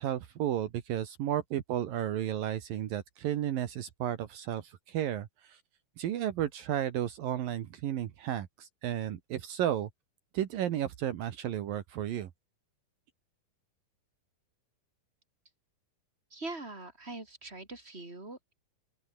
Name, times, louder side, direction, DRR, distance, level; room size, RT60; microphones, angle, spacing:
voice 1, 0.0-5.6 6.0-9.9 10.3-12.3, right 11 dB, 70° right, 3.2 m, -33 dB
voice 2, 16.3-18.5, right 2 dB, 15° right, 5.6 m, -42 dB
open air
omnidirectional pair, 4.2 m